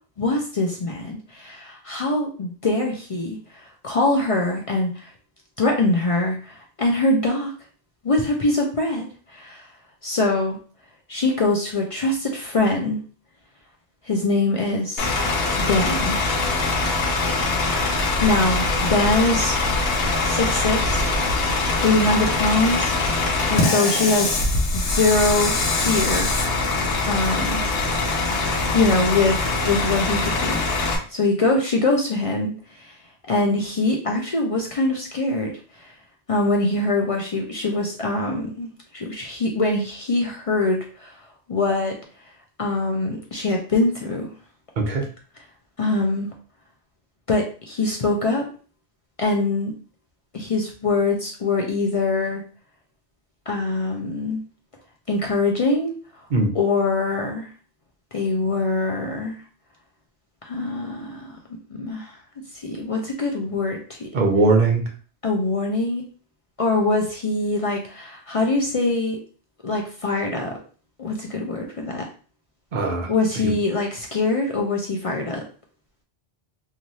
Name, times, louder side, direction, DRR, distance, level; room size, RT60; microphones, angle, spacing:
voice 1, 0.2-3.4 3.8-5.1 5.6-7.5 8.0-9.1 9.3-9.6 10.0-10.6 11.1-13.0 14.1-15.1 15.7-16.2 18.2-19.5 20.2-21.0 21.8-22.9 23.5-24.4 24.7-25.5 25.8-26.4 27.1-27.6 28.7-30.6 30.9-32.5 32.8-32.9 33.3-35.5 35.8-35.9 36.3-41.1 41.5-41.9 42.6-44.3 45.8-46.3 47.3-48.4 49.2-49.7 50.3-52.4 53.5-54.4 55.1-55.9 56.5-57.5 58.1-59.4 60.4-61.4 61.8-62.1 62.6-64.1 65.2-66.0 66.6-69.2 69.6-70.5 71.0-72.0 73.1-75.4, left 2 dB, 45° left, 1 dB, 0.4 m, -23 dB
Bus / Idling, 15.0-31.0, left 3 dB, 70° left, 0.9 m, -23 dB
voice 2, 64.1-64.8 72.7-73.1 73.4-73.5, right 3 dB, 55° right, 2 dB, 0.7 m, -19 dB
3.0 x 2.4 x 2.6 m, 0.39 s
omnidirectional pair, 1.1 m